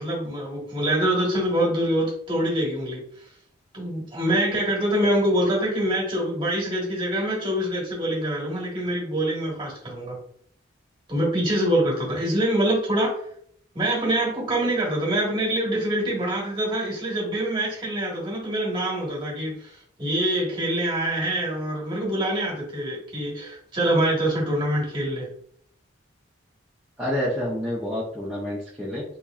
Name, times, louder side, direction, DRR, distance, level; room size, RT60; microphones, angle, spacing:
voice 1, 0.0-3.0 3.7-10.2 11.1-13.2 13.7-25.3, right 1 dB, 25° right, -4 dB, 1.3 m, -25 dB
voice 2, 27.0-29.0, left 1 dB, 5° right, -8 dB, 0.6 m, -28 dB
3.7 x 2.9 x 2.4 m, 0.64 s
head